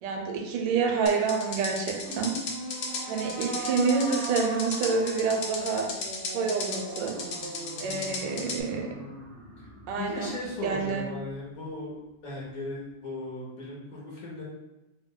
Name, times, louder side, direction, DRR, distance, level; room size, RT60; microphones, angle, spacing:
voice 1, 0.0-2.4 3.1-5.9 6.3-7.2 7.8-9.0 9.9-10.3 10.6-11.1, right 5 dB, 90° right, 2 dB, 1.3 m, -28 dB
sound 1, 1.1-8.6, left 4 dB, 80° left, 1.3 m, -35 dB
sound 2, 2.0-11.4, right 2 dB, 50° right, 0.5 m, -41 dB
voice 2, 9.9-11.9 12.2-14.4, left 2 dB, 60° left, -5 dB, 1.3 m, -37 dB
3.4 x 2.2 x 3.6 m, 0.98 s
omnidirectional pair, 1.9 m